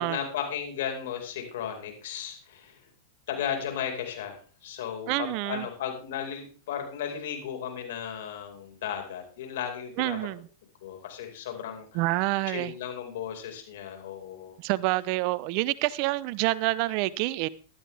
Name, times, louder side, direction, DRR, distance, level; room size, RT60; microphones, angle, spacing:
voice 1, 0.0-2.8 3.3-10.2 10.8-12.0 12.5-14.5, left 8 dB, 70° left, 4.9 m, -35 dB
voice 2, 5.1-5.7 10.0-10.4 11.9-12.7 14.6-17.5, right 19 dB, 50° right, 0.6 m, -27 dB
14.0 x 12.5 x 3.4 m
hypercardioid pair, 110°, 0 cm